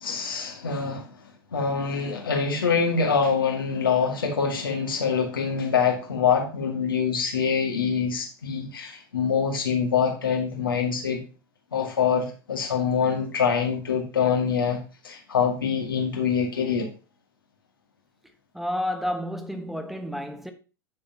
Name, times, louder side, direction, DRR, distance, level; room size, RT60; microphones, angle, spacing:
voice 1, 0.0-1.1 1.5-11.2 11.7-16.9, left 6 dB, 75° left, 2.2 m, -25 dB
voice 2, 18.5-20.5, equal, ahead, 1.2 m, -30 dB
10.5 x 7.0 x 3.0 m
figure-of-eight pair, 80°, 12 cm